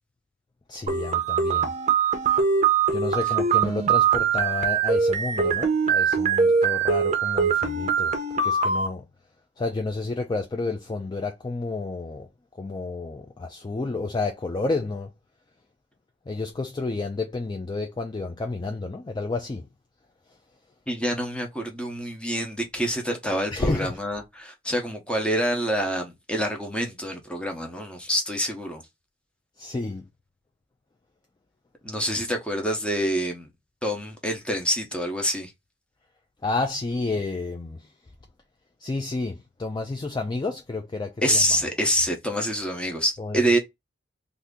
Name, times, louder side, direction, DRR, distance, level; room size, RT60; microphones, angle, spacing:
voice 1, 0.7-1.7 2.9-8.1 8.4-9.1 9.6-12.3 12.6-15.1 16.3-19.7 23.5-24.0 29.6-30.0 36.4-37.8 38.8-41.4 43.2-43.6, left 3 dB, 25° left, 0.4 m, -30 dB
sound 1, 0.9-8.9, right 6 dB, 40° right, 0.6 m, -22 dB
voice 2, 20.9-28.8 31.8-33.5 33.8-35.5 41.2-43.6, equal, 5° left, 0.8 m, -26 dB
2.8 x 2.5 x 3.5 m
head